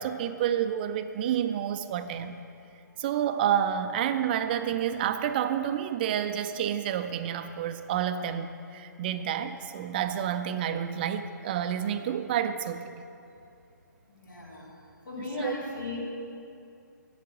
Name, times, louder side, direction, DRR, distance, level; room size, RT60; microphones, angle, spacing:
voice 1, 0.0-2.4 3.0-13.1 15.2-15.5, right 9 dB, 30° right, 9 dB, 0.4 m, -29 dB
voice 2, 14.1-14.7 15.0-16.0, left 3 dB, 80° left, -3 dB, 3.0 m, -36 dB
8.1 x 8.0 x 7.4 m, 2.6 s
figure-of-eight pair, 135°, 10 cm